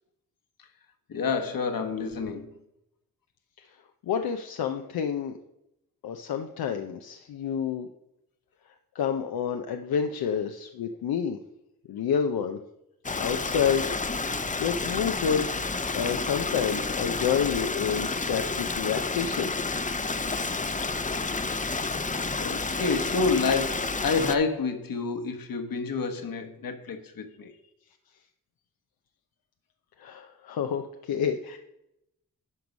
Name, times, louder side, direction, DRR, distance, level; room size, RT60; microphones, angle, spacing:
voice 1, 1.1-2.5 22.4-27.5, left 4 dB, 70° left, 1.3 m, -29 dB
voice 2, 4.0-5.4 6.0-7.9 8.9-11.4 11.9-12.6 13.1-13.9 14.6-15.6 15.9-19.5 30.0-31.6, left 7 dB, 90° left, 0.6 m, -29 dB
Stream, 13.0-24.4, left 3 dB, 20° left, 0.6 m, -30 dB
11.5 x 4.7 x 5.2 m
cardioid pair, 60°, 36 cm